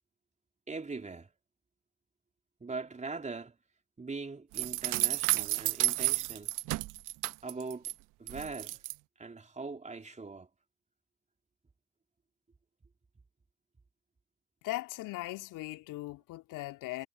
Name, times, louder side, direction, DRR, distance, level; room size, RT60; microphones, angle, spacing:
voice 1, 0.7-1.3 2.6-3.6 4.0-6.5 7.4-7.9 8.2-8.8 9.2-10.5, right 4 dB, 20° right, 3.5 m, -41 dB
sound 1, 4.5-7.9 8.3-8.9, right 19 dB, 55° right, 1.3 m, -31 dB
voice 2, 14.6-17.1, left 18 dB, 55° left, 2.8 m, -39 dB
hypercardioid pair, 65°, 37 cm